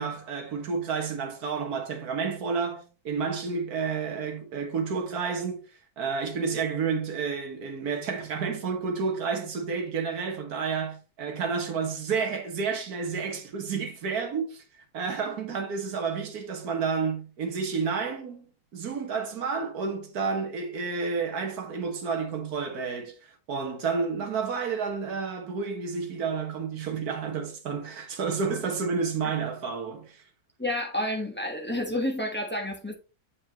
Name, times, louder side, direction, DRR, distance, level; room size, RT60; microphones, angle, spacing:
voice 1, 0.0-5.7 6.0-14.6 14.9-18.5 18.7-30.2, right 5 dB, 60° right, 1.8 m, -30 dB
voice 2, 30.6-32.9, left 1 dB, 10° left, 0.9 m, -30 dB
7.4 x 5.3 x 2.9 m
omnidirectional pair, 1.9 m